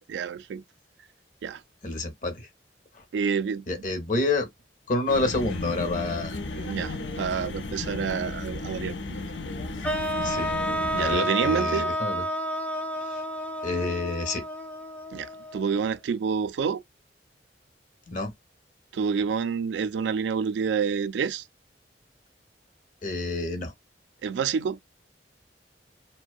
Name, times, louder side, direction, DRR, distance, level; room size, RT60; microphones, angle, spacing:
voice 1, 0.1-0.6 1.4-1.6 3.1-3.6 6.6-9.2 10.9-11.9 15.1-16.8 18.9-21.5 24.2-24.8, right 6 dB, 75° right, 0.3 m, -28 dB
voice 2, 1.8-2.5 2.9-3.0 3.7-4.5 4.9-6.4 10.2-10.5 11.0-12.2 13.0-13.2 13.6-14.5 18.1-18.3 23.0-23.7, left 2 dB, 45° left, 0.8 m, -28 dB
sound 1, 5.1-11.2, left 2 dB, 90° left, 0.5 m, -34 dB
sound 2, 9.8-15.9, equal, 10° left, 0.4 m, -30 dB
2.6 x 2.1 x 2.3 m
head